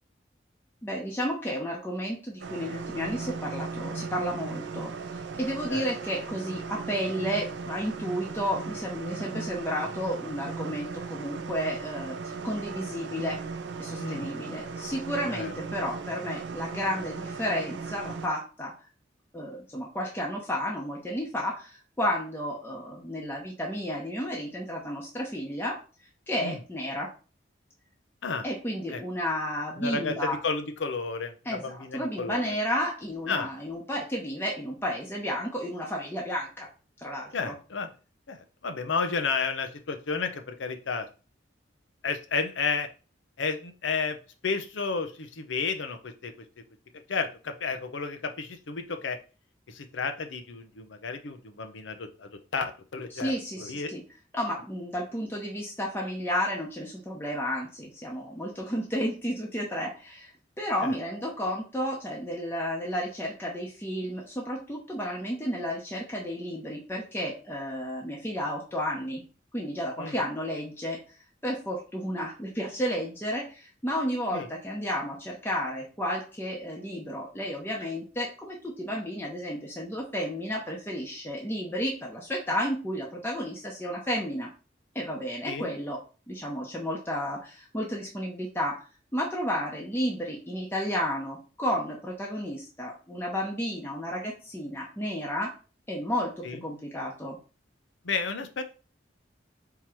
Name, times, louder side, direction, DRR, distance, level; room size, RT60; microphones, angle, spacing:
voice 1, 0.8-4.9 5.4-13.4 13.8-18.7 19.3-25.8 26.3-27.1 28.4-30.4 31.4-36.7 37.0-37.5 53.1-54.0 54.3-60.3 60.6-69.2 69.5-71.0 71.4-84.5 84.9-86.0 86.3-88.8 89.1-95.5 95.9-97.4, equal, 10° left, -3 dB, 0.8 m, -32 dB
sound 1, 2.4-18.3, right 4 dB, 70° right, 0.4 m, -37 dB
voice 2, 14.0-14.3 15.3-15.5 26.4-26.6 28.2-28.4 28.9-29.0 29.8-32.5 33.3-33.5 37.3-37.9 38.3-38.4 38.6-41.1 42.0-42.9 43.4-44.2 44.4-46.3 47.1-49.2 49.7-53.9 60.8-61.0 70.0-70.1 74.3-74.5 85.5-85.7 96.4-96.6 98.0-98.6, left 4 dB, 85° left, 7 dB, 0.7 m, -32 dB
3.7 x 2.9 x 4.4 m, 0.35 s
head